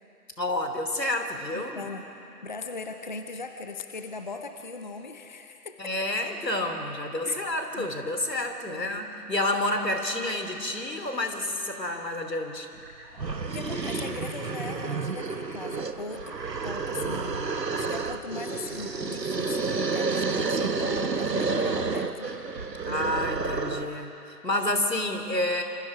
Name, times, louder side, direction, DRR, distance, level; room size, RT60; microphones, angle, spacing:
voice 1, 0.4-1.8 5.8-12.7 16.9-17.9 22.9-25.6, left 1 dB, 90° left, 5 dB, 3.1 m, -30 dB
voice 2, 1.5-2.0 2.4-5.8 7.2-7.9 8.7-9.1 13.5-17.4 17.7-22.3 22.8-23.2 24.7-24.9, left 4 dB, 30° left, 6 dB, 0.7 m, -39 dB
Telephone, 9.7-12.0 12.5-14.3 15.2-17.5 18.3-19.6 21.4-21.6 21.9-22.7 23.2-23.7, left 1 dB, ahead, 1.1 m, -53 dB
sound 1, 12.8-12.9 13.2-24.0, right 4 dB, 85° right, 1.4 m, -30 dB
27.0 x 26.0 x 5.0 m, 2.9 s
figure-of-eight pair, 155°, 48 cm